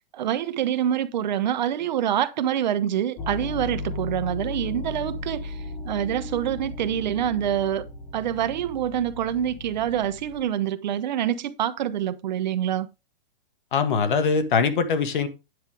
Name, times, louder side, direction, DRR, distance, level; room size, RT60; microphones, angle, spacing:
voice 1, 0.1-7.9 8.1-12.9, right 10 dB, 50° right, 1.1 m, -26 dB
sound 1, 3.2-10.4, left 2 dB, 10° left, 1.0 m, -36 dB
voice 2, 13.7-15.3, left 5 dB, 55° left, 1.8 m, -22 dB
9.7 x 8.1 x 3.4 m
hypercardioid pair, 165°, 30 cm